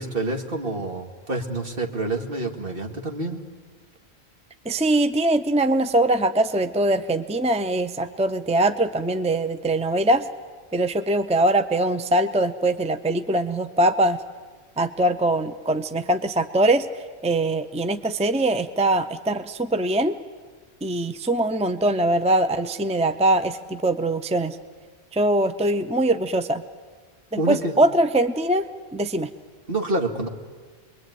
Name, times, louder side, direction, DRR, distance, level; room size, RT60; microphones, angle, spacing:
voice 1, 0.0-3.4 27.4-27.8 29.7-30.3, right 2 dB, 55° right, 3 dB, 2.4 m, -27 dB
voice 2, 4.6-10.2 10.7-14.2 14.8-16.9 17.2-20.1 20.8-24.6 25.1-26.6 27.3-28.6 28.9-29.3, right 1 dB, 5° right, 10 dB, 0.7 m, -22 dB
27.5 x 22.0 x 9.5 m, 1.5 s
omnidirectional pair, 1.1 m